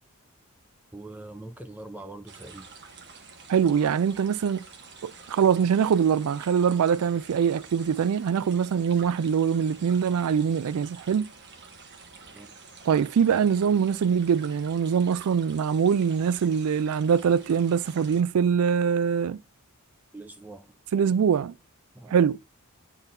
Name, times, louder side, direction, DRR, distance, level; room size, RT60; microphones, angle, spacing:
voice 1, 0.9-2.7 12.3-12.6 20.1-20.8 21.9-22.1, right 2 dB, 10° right, 0.5 m, -43 dB
sound 1, 2.3-18.2, right 5 dB, 55° right, 1.4 m, -48 dB
voice 2, 3.5-4.6 5.0-11.3 12.9-19.4 20.9-21.5 22.1-22.4, right 7 dB, 75° right, 0.4 m, -23 dB
10.5 x 3.8 x 2.6 m
head